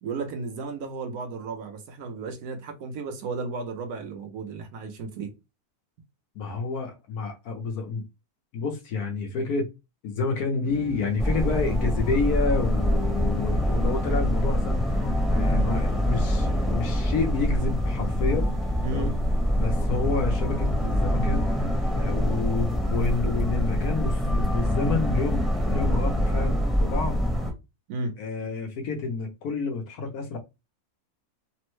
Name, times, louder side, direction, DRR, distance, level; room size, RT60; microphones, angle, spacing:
voice 1, 0.0-5.3 18.8-19.2 27.9-28.1, right 4 dB, 75° right, 1.2 m, -34 dB
voice 2, 6.3-8.0 8.5-9.7 10.0-18.5 18.9-19.1 19.6-21.7 22.0-27.2 28.2-30.4, left 4 dB, 75° left, 1.2 m, -29 dB
sound 1, 10.6-23.8, left 3 dB, 15° left, 0.5 m, -39 dB
sound 2, 11.2-27.5, equal, ahead, 1.0 m, -25 dB
3.4 x 2.1 x 3.0 m
omnidirectional pair, 1.6 m